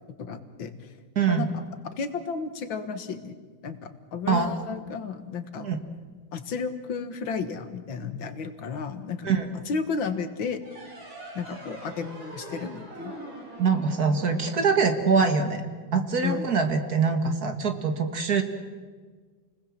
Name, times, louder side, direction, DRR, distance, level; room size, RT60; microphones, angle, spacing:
voice 1, 0.2-0.7 1.3-1.5 1.9-3.4 3.6-5.7 6.3-9.3 9.7-10.6 11.4-13.1 16.2-16.5, left 5 dB, 80° left, 9 dB, 2.2 m, -32 dB
voice 2, 1.2-1.5 4.3-4.5 5.6-5.8 9.2-9.5 13.6-15.6 15.9-18.4, right 5 dB, 50° right, 6 dB, 2.2 m, -24 dB
sound 1, 10.6-15.9, right 1 dB, 85° right, 6.3 m, -42 dB
29.0 x 20.0 x 7.4 m, 1.5 s
omnidirectional pair, 2.1 m